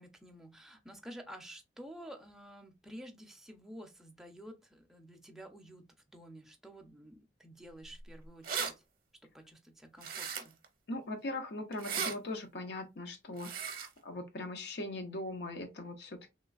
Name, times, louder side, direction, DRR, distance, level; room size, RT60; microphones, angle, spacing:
voice 1, 0.0-5.9 6.1-8.8 9.3-10.6, equal, ahead, 0.5 m, -51 dB
sound 1, 8.0-8.1 8.2-8.7 10.0-10.7 11.7-12.1 13.4-13.9, right 7 dB, 50° right, 0.7 m, -36 dB
voice 2, 10.9-16.3, left 2 dB, 60° left, 0.5 m, -40 dB
3.2 x 3.1 x 2.3 m
head